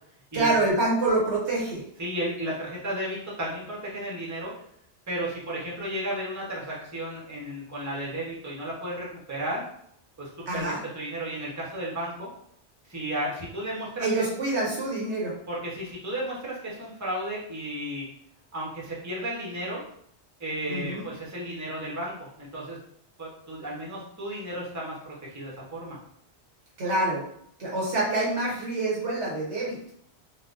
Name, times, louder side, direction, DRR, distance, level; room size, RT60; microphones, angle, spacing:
voice 1, 0.3-1.8 10.5-10.8 14.0-15.4 20.7-21.1 26.8-27.2 27.6-29.8, right 2 dB, 85° right, -5 dB, 1.5 m, -26 dB
voice 2, 2.0-4.5 5.1-9.6 10.2-12.3 12.9-14.1 15.5-18.0 18.5-19.8 20.4-22.8 23.2-26.0, right 1 dB, 15° right, -5 dB, 0.8 m, -33 dB
3.9 x 2.3 x 2.5 m, 0.69 s
omnidirectional pair, 1.1 m